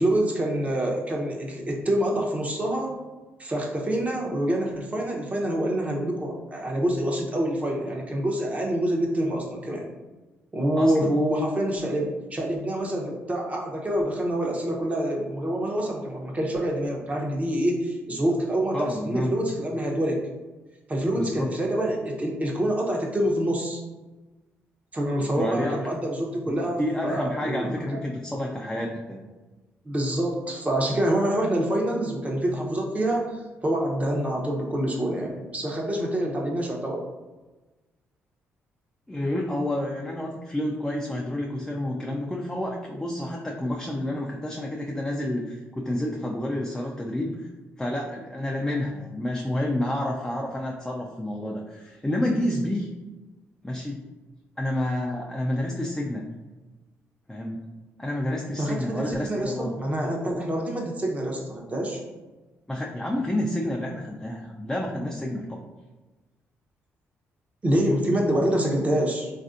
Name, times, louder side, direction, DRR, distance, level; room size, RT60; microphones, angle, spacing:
voice 1, 0.0-2.9 3.4-9.9 10.5-20.2 20.9-23.8 24.9-27.7 29.8-37.0 58.6-62.0 67.6-69.3, right 1 dB, 30° right, -1 dB, 0.7 m, -26 dB
voice 2, 10.8-11.1 18.7-19.3 21.1-21.5 25.4-25.8 26.5-29.3 39.1-47.5 47.8-52.9 53.6-54.0 54.6-56.3 57.3-57.6 58.0-59.8 62.7-65.6, left 1 dB, 10° left, -1 dB, 0.4 m, -29 dB
3.2 x 2.5 x 2.5 m, 1.2 s
supercardioid pair, 70°, 5 cm